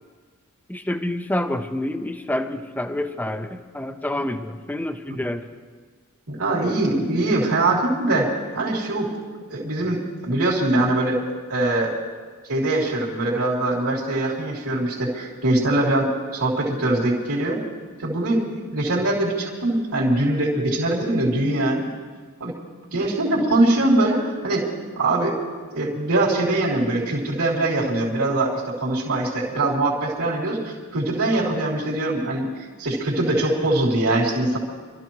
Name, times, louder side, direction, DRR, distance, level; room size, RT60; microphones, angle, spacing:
voice 1, 0.7-5.5, left 1 dB, 10° left, 7 dB, 0.6 m, -28 dB
voice 2, 6.3-9.1 9.5-11.2 11.5-11.9 12.5-17.6 18.0-21.9 22.4-22.5 22.9-24.6 25.0-25.3 25.7-32.5 32.8-34.6, right 2 dB, 75° right, -7 dB, 3.3 m, -22 dB
26.0 x 13.5 x 3.1 m, 1.5 s
head